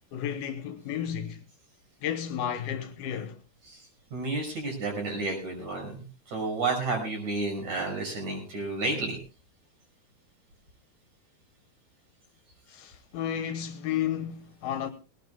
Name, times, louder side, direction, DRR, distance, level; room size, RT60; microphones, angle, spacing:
voice 1, 0.1-1.4 2.0-3.4 12.7-14.9, left 9 dB, 75° left, 2.7 m, -32 dB
voice 2, 4.1-6.0 6.3-9.2, right 3 dB, 45° right, 7.2 m, -31 dB
21.0 x 18.5 x 2.2 m
omnidirectional pair, 4.6 m